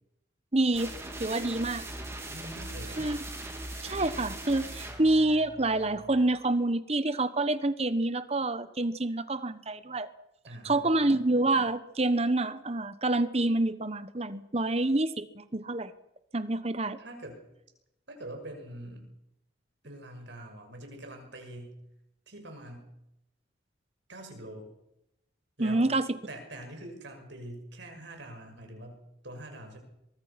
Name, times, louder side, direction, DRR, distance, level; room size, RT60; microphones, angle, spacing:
voice 1, 0.5-0.9 1.2-1.8 3.0-3.2 3.8-10.1 10.6-15.9 16.3-17.0 25.6-26.1, right 2 dB, 30° right, 13 dB, 1.2 m, -27 dB
sound 1, 0.7-6.4, right 1 dB, 15° right, 3.5 m, -41 dB
voice 2, 2.3-3.1 10.4-11.1 17.0-17.4 18.1-19.0 19.8-21.8 22.3-22.9 24.1-24.7 25.6-25.9 26.3-29.8, right 1 dB, 65° right, 4 dB, 6.1 m, -44 dB
23.5 x 23.0 x 6.0 m, 0.84 s
head